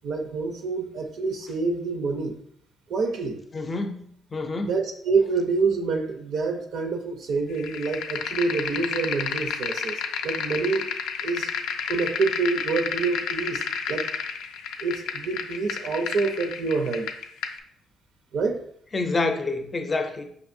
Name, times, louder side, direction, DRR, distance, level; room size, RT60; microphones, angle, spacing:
voice 1, 0.0-2.4 2.9-3.4 4.6-10.9 11.2-11.5 11.9-14.1 14.8-17.1 18.3-18.6, right 4 dB, 75° right, 0.5 m, -27 dB
voice 2, 3.5-4.7 18.9-20.2, left 3 dB, 30° left, 0.5 m, -27 dB
sound 1, 7.6-17.6, left 6 dB, 90° left, 0.3 m, -31 dB
5.3 x 2.6 x 2.5 m
cardioid pair, 90°, 0 cm